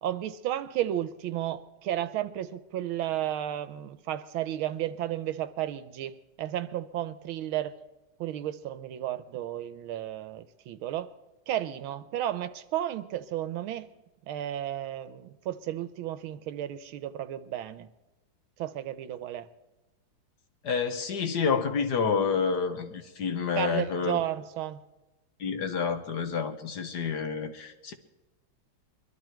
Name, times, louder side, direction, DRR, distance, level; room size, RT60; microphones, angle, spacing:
voice 1, 0.0-7.8 8.2-11.1 11.5-13.9 14.3-17.9 18.6-19.5 23.6-24.8, right 12 dB, 85° right, 13 dB, 1.6 m, -33 dB
voice 2, 20.6-24.2 25.4-27.9, left 5 dB, 55° left, 7 dB, 1.5 m, -29 dB
22.0 x 12.5 x 4.5 m, 1.1 s
omnidirectional pair, 2.2 m